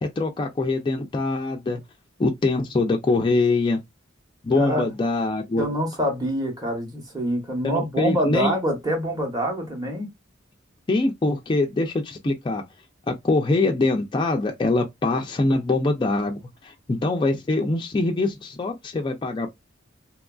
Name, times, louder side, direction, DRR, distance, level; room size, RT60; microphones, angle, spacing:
voice 1, 0.0-1.8 2.2-3.8 4.4-5.7 7.6-8.6 10.9-12.6 13.1-19.5, left 2 dB, 25° left, 0.3 m, -23 dB
voice 2, 4.6-4.9 5.6-10.1, equal, 20° right, 0.9 m, -26 dB
2.9 x 2.4 x 2.2 m
head